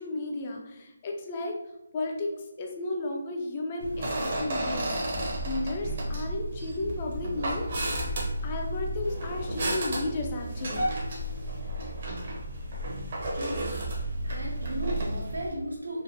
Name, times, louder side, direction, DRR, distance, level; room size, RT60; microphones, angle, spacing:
voice 1, 0.0-1.6 1.9-2.3 2.6-4.9 5.4-7.7 8.4-10.8, left 2 dB, 30° left, 2 dB, 0.4 m, -33 dB
sound 1, 3.8-15.5, right 1 dB, 50° right, 0.7 m, -32 dB
sound 2, 8.8-12.3, left 2 dB, 75° left, 1.1 m, -48 dB
voice 2, 13.3-16.0, equal, 90° right, -2 dB, 0.9 m, -36 dB
3.1 x 2.1 x 2.6 m, 0.89 s
figure-of-eight pair, 155°, 0 cm